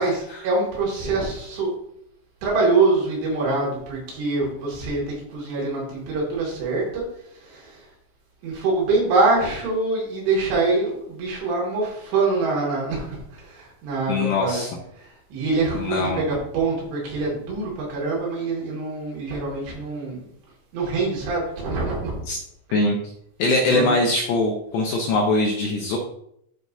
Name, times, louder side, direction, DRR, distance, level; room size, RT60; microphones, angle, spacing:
voice 1, 0.0-1.7 2.4-7.9 8.4-14.6 14.9-20.3 20.7-22.2 23.4-24.0, right 3 dB, 70° right, -4 dB, 4.7 m, -25 dB
voice 2, 14.1-14.7 15.7-16.2 22.3-22.4 22.7-23.0 23.4-26.0, left 2 dB, 75° left, 0 dB, 2.6 m, -22 dB
13.5 x 4.6 x 2.7 m, 0.73 s
omnidirectional pair, 5.7 m